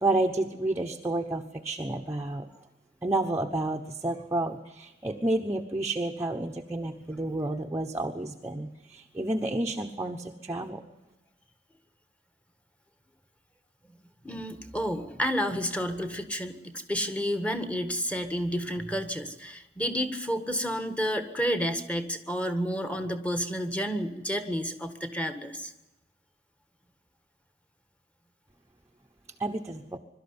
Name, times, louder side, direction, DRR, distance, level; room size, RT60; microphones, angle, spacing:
voice 1, 0.0-2.5 3.0-10.8 29.4-30.0, right 2 dB, 15° right, 1 dB, 1.0 m, -30 dB
voice 2, 14.2-25.7, equal, 5° left, 8 dB, 1.6 m, -30 dB
23.0 x 13.0 x 9.7 m, 1.0 s
head